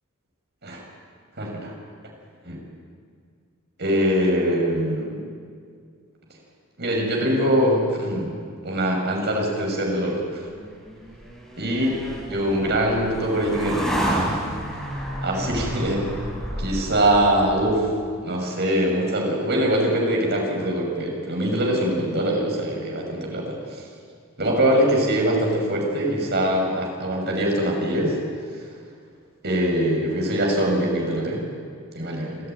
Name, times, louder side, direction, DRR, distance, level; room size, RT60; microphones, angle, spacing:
voice 1, 1.4-1.7 2.4-2.6 3.8-5.2 6.8-8.3 8.6-10.5 11.6-12.0 12.3-14.6 15.2-16.0 16.6-17.9 18.2-23.8 24.4-28.2 29.4-31.4 31.9-32.4, right 1 dB, 55° right, 0 dB, 6.5 m, -23 dB
sound 1, 10.5-17.9, right 1 dB, ahead, 6.9 m, -30 dB
27.0 x 14.0 x 9.4 m, 2.2 s
head